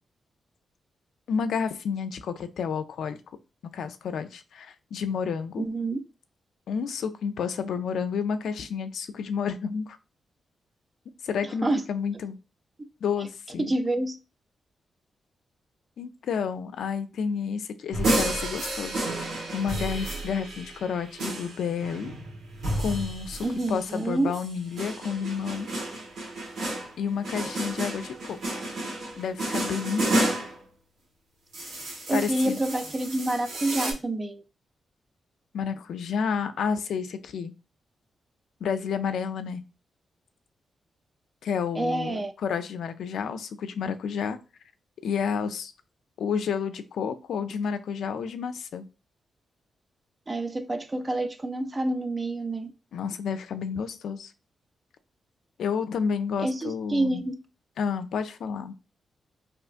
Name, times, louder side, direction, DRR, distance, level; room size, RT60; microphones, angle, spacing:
voice 1, 1.3-3.2 3.7-5.6 6.7-10.0 11.2-12.4 13.0-13.7 16.0-19.0 19.5-22.1 22.8-25.7 27.0-28.6 29.2-30.2 32.1-32.6 35.5-37.5 38.6-39.6 41.4-44.4 45.0-45.7 46.2-48.9 52.9-54.3 55.6-57.2 57.8-58.7, left 6 dB, 80° left, 0.4 m, -30 dB
voice 2, 5.6-6.0 11.6-11.8 12.8-12.9 13.6-14.2 23.4-24.3 32.1-34.4 41.8-42.3 50.3-52.7 56.4-57.4, right 2 dB, 30° right, 0.5 m, -28 dB
sound 1, 17.9-24.0 24.3-30.6 31.5-33.9, right 1 dB, 85° right, 1.3 m, -31 dB
3.4 x 2.9 x 2.4 m
cardioid pair, 70°, 0 cm